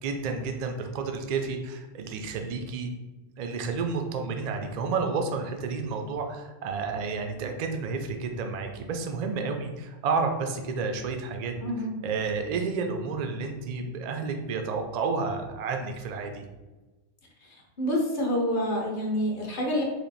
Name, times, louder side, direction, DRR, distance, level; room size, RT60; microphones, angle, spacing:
voice 1, 0.0-2.9 3.4-16.4, right 4 dB, 80° right, 5 dB, 0.3 m, -31 dB
voice 2, 11.6-11.9 17.8-19.8, equal, 45° left, -1 dB, 0.9 m, -27 dB
3.4 x 2.6 x 4.0 m, 1.2 s
omnidirectional pair, 1.3 m